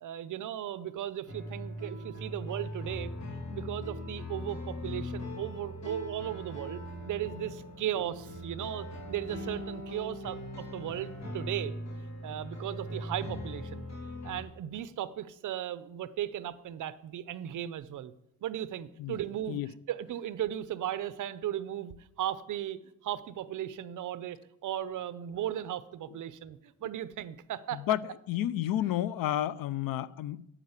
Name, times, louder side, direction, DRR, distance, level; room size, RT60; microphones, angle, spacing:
voice 1, 0.0-3.1 3.5-11.7 12.2-13.9 14.2-18.1 18.4-27.8, right 11 dB, 60° right, 0.8 m, -36 dB
sound 1, 1.3-14.4, left 1 dB, 50° left, 2.7 m, -40 dB
voice 2, 28.3-30.4, left 12 dB, 80° left, 0.6 m, -30 dB
10.0 x 8.7 x 8.2 m
cardioid pair, 150°, 34 cm